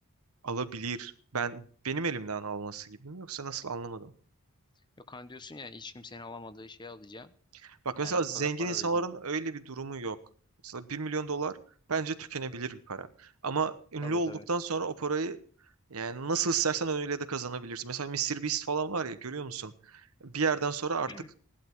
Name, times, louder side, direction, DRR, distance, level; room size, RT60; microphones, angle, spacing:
voice 1, 0.4-4.1 7.8-10.2 10.6-11.6 11.9-15.4 15.9-21.1, right 4 dB, 75° right, 11 dB, 1.1 m, -32 dB
voice 2, 5.1-7.3 8.0-9.0 14.0-14.5 21.1-21.3, left 3 dB, 20° left, 12 dB, 0.8 m, -45 dB
16.5 x 11.5 x 4.6 m, 0.44 s
head